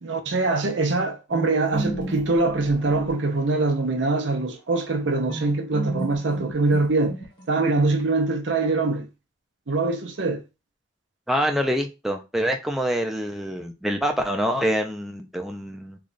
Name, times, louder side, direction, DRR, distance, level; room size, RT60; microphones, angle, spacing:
voice 1, 0.0-7.2 7.5-9.1 9.7-10.4, right 3 dB, 75° right, 0.7 m, -23 dB
sound 1, 1.3-3.9 5.3-7.7, right 1 dB, 25° left, 1.2 m, -35 dB
voice 2, 11.3-16.0, equal, ahead, 0.5 m, -25 dB
3.2 x 2.3 x 3.9 m
head